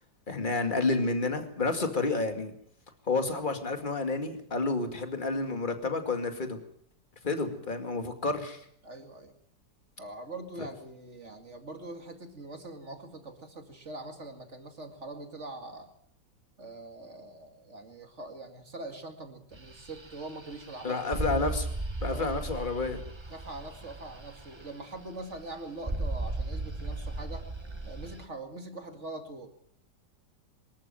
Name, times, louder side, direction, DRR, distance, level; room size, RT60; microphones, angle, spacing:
voice 1, 0.3-2.5 3.1-6.6 7.2-8.6 20.8-21.7 22.0-23.0, left 3 dB, 25° left, 6 dB, 2.4 m, -30 dB
voice 2, 8.8-9.4 10.0-15.9 16.6-21.2 22.1-22.4 23.3-27.5 27.8-29.5, right 2 dB, 40° right, 5 dB, 2.6 m, -43 dB
sound 1, 19.5-28.3, right 2 dB, 15° right, 1.1 m, -36 dB
24.0 x 13.5 x 9.0 m, 0.66 s
omnidirectional pair, 1.9 m